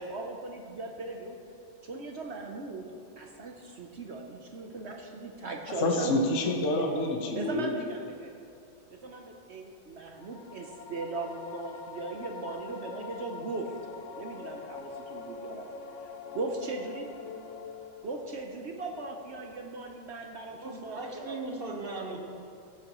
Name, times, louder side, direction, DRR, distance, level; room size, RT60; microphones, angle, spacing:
voice 1, 0.0-1.4 1.8-6.2 7.3-8.3 8.9-13.7 14.2-15.7 16.3-17.1 18.0-21.4, right 3 dB, 55° right, 2 dB, 0.7 m, -38 dB
voice 2, 5.7-7.7, left 2 dB, 45° left, 1 dB, 1.2 m, -28 dB
sound 1, 10.1-18.3, left 5 dB, 70° left, 0.7 m, -44 dB
voice 3, 20.5-22.2, right 2 dB, 35° right, 1 dB, 1.2 m, -38 dB
15.5 x 10.0 x 3.0 m, 2.6 s
omnidirectional pair, 2.1 m